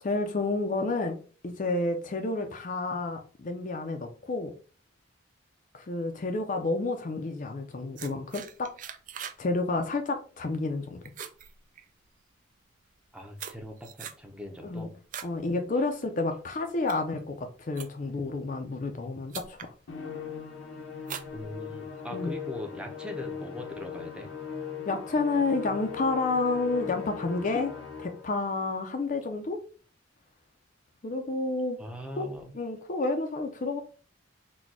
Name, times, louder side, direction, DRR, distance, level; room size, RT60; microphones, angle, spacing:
voice 1, 0.0-1.2 1.4-4.5 5.7-8.7 9.4-11.0 14.6-14.9 15.2-19.7 22.1-22.4 24.8-27.7 28.0-29.6 31.0-31.8 32.2-33.8, left 3 dB, 40° left, 5 dB, 0.5 m, -30 dB
sound 1, 8.0-9.4 9.7-10.1 10.5-10.8 11.0-12.2 12.9-15.4 15.8-16.1 16.6-18.2 18.9-19.0 19.3-19.7 20.2-20.6 21.0-22.0, right 8 dB, 40° right, 0.4 m, -42 dB
voice 2, 13.1-14.9 21.3-24.3 31.8-32.5, equal, 5° right, 2 dB, 0.7 m, -41 dB
Musical instrument, 19.9-28.3, left 7 dB, 80° left, 0.8 m, -39 dB
4.1 x 2.2 x 4.6 m, 0.39 s
head